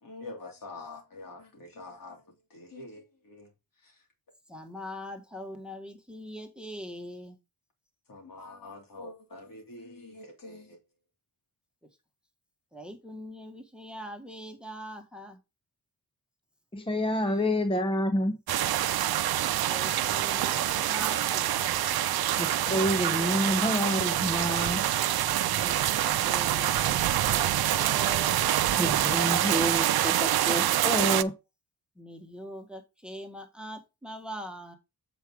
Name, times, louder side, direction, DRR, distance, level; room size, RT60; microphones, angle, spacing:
voice 1, 0.0-4.1 8.1-10.8, left 2 dB, 65° left, 3.2 m, -46 dB
voice 2, 4.5-7.4 12.7-15.4 17.3-17.4 19.4-21.7 25.5-28.4 32.0-34.8, equal, 5° right, 1.7 m, -42 dB
voice 3, 16.7-18.4 22.4-24.8 28.8-31.3, equal, 15° left, 0.9 m, -28 dB
sound 1, 18.5-31.2, right 12 dB, 90° right, 0.6 m, -26 dB
8.0 x 5.1 x 4.8 m
wide cardioid pair, 105°, 36 cm